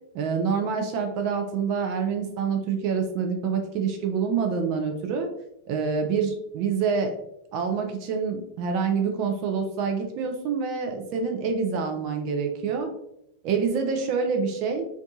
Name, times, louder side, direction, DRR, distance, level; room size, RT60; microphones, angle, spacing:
voice 1, 0.1-5.3 5.7-7.2 7.5-12.9 13.4-14.9, right 5 dB, 40° right, 3 dB, 0.3 m, -26 dB
2.6 x 2.2 x 2.6 m, 0.82 s
figure-of-eight pair, 90°, 0 cm